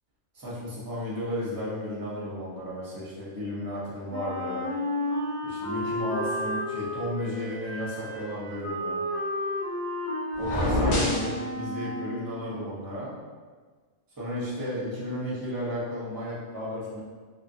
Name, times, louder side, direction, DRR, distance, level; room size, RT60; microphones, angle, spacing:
voice 1, 0.3-4.7 5.4-9.0 10.4-13.2 14.2-17.0, left 1 dB, 20° right, -8 dB, 0.7 m, -33 dB
Wind instrument woodwind instrument, 4.1-12.2, left 1 dB, 30° left, 0.9 m, -32 dB
sound 1, 10.4-11.3, left 1 dB, 85° left, 1.2 m, -26 dB
2.9 x 2.4 x 2.7 m, 1.5 s
omnidirectional pair, 1.4 m